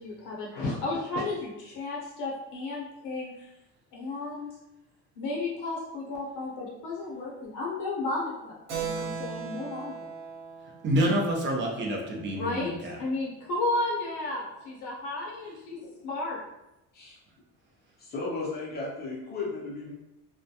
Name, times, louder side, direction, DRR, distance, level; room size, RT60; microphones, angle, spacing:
voice 1, 0.0-3.3 3.9-4.5 5.2-9.9 12.3-16.4, left 2 dB, 65° left, -3 dB, 0.7 m, -33 dB
Keyboard (musical), 8.7-12.8, right 6 dB, 70° right, 1.0 m, -39 dB
voice 2, 10.8-13.0, right 1 dB, 35° right, -1 dB, 0.6 m, -27 dB
voice 3, 18.0-19.9, left 3 dB, 30° left, -3 dB, 0.6 m, -35 dB
2.2 x 2.1 x 2.7 m, 0.92 s
cardioid pair, 145°, 33 cm